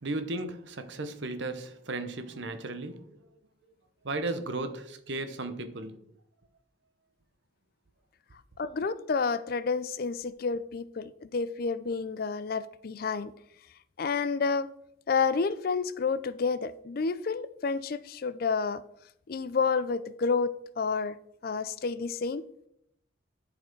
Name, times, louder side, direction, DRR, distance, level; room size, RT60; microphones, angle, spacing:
voice 1, 0.0-3.2 4.0-6.0, right 2 dB, 65° right, 0.8 m, -35 dB
voice 2, 8.6-13.3 14.0-14.7 15.1-18.8 19.3-21.2 21.4-22.4, left 5 dB, 50° left, 0.4 m, -30 dB
11.0 x 4.3 x 4.6 m
head